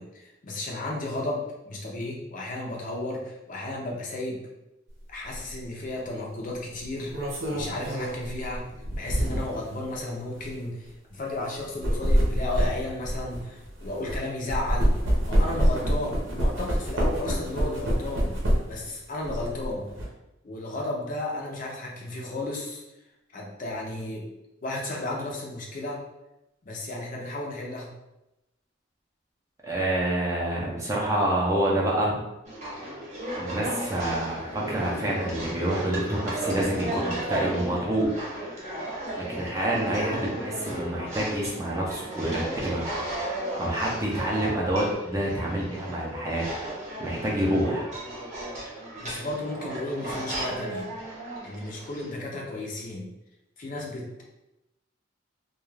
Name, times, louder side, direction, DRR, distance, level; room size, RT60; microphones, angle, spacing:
voice 1, 0.0-4.4 5.1-8.6 9.0-15.0 15.3-18.4 18.7-19.9 20.4-22.8 23.3-24.2 24.6-26.0 26.6-27.9 49.0-50.9 51.4-53.1 53.6-54.2, left 2 dB, 40° left, -2 dB, 0.5 m, -33 dB
sound 1, 5.3-5.5 6.8-9.7 10.3-10.5 11.6-14.2 14.5-18.8 19.2-20.0, equal, 75° right, 0.7 m, -26 dB
voice 2, 29.6-32.2 33.4-38.6 39.2-42.9 43.6-46.4 47.0-47.9, right 1 dB, 15° right, -4 dB, 0.5 m, -27 dB
sound 2, 32.4-52.1, right 1 dB, 35° right, 0.8 m, -35 dB
2.3 x 2.3 x 3.2 m, 0.94 s
head